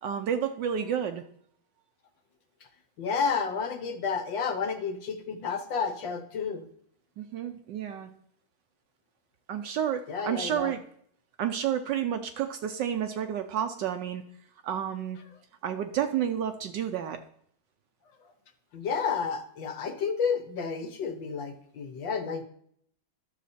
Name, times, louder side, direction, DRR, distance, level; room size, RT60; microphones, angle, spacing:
voice 1, 0.0-1.2 7.2-8.1 9.5-10.8 11.4-14.2 14.6-15.2 15.6-17.2, right 9 dB, 70° right, 8 dB, 1.1 m, -30 dB
voice 2, 3.0-6.7 10.1-10.7 18.7-22.4, left 6 dB, 65° left, 7 dB, 1.5 m, -31 dB
11.5 x 6.6 x 4.2 m, 0.65 s
omnidirectional pair, 2.3 m